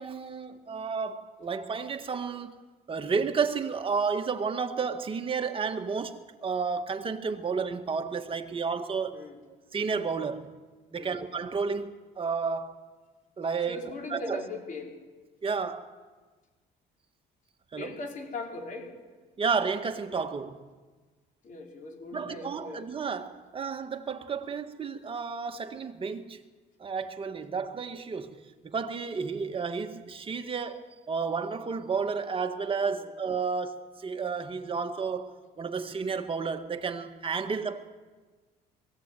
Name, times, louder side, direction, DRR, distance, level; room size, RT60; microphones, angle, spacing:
voice 1, 0.0-2.5 2.9-9.2 9.7-10.5 10.9-12.8 13.4-14.4 15.4-15.9 17.7-17.9 19.4-20.7 22.1-26.4 26.8-37.9, right 5 dB, 30° right, 1.8 m, -32 dB
voice 2, 13.7-14.9 17.8-18.9 21.4-22.9 32.9-33.1, left 3 dB, 50° left, 5.0 m, -39 dB
21.5 x 16.0 x 9.2 m
cardioid pair, 110°, 17 cm